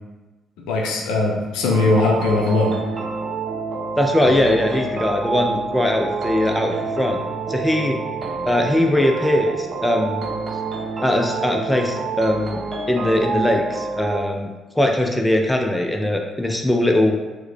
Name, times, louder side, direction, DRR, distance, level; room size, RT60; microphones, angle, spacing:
voice 1, 0.7-2.7, left 2 dB, 65° left, -1 dB, 0.5 m, -19 dB
sound 1, 1.6-14.2, right 4 dB, 40° right, 0.6 m, -28 dB
voice 2, 4.0-7.2 7.5-8.0 8.5-10.2 11.0-12.6 12.9-17.2, left 1 dB, 10° left, 2 dB, 0.5 m, -20 dB
4.6 x 2.1 x 3.3 m, 1.2 s
figure-of-eight pair, 40°, 0 cm